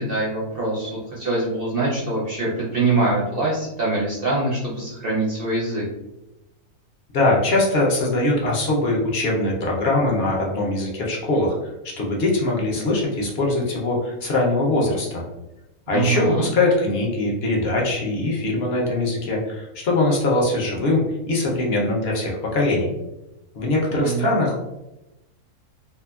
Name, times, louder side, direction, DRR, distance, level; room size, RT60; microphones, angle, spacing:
voice 1, 0.0-5.8 15.9-16.5 23.9-24.3, right 2 dB, 60° right, -5 dB, 0.6 m, -24 dB
voice 2, 7.1-11.5 12.0-15.2 15.9-22.9 23.5-24.6, left 2 dB, 55° left, -2 dB, 0.7 m, -22 dB
2.8 x 2.4 x 2.3 m, 0.93 s
omnidirectional pair, 1.6 m